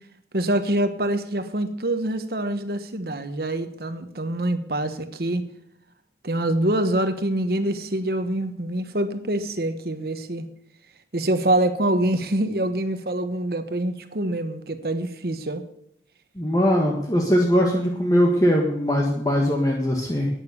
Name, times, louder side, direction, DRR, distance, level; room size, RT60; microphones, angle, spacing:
voice 1, 0.3-5.4 6.2-10.4 11.1-15.6, right 1 dB, 60° right, 9 dB, 1.2 m, -25 dB
voice 2, 16.4-20.3, equal, 20° left, 0 dB, 1.5 m, -21 dB
11.5 x 9.4 x 6.9 m, 0.74 s
head